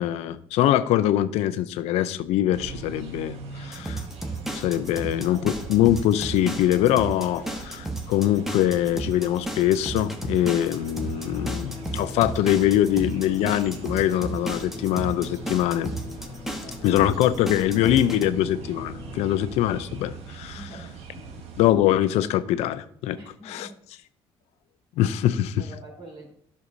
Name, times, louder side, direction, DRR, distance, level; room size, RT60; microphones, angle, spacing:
voice 1, 0.0-4.0 4.5-15.9 16.8-20.7 21.6-23.2 23.4-23.7 25.0-25.6, left 12 dB, 80° left, 14 dB, 0.5 m, -23 dB
sound 1, 2.5-21.7, right 5 dB, 75° right, 1.4 m, -42 dB
sound 2, 3.7-18.3, right 2 dB, 5° right, 1.1 m, -33 dB
voice 2, 4.7-5.7 16.6-17.1 17.8-17.9 19.3-19.5 20.5-21.3 23.1-23.8 25.6-26.3, right 2 dB, 55° right, -1 dB, 3.5 m, -47 dB
Musical instrument, 11.3-19.8, left 4 dB, 35° left, 1.3 m, -41 dB
11.0 x 6.5 x 2.6 m, 0.67 s
cardioid pair, 90°, 11 cm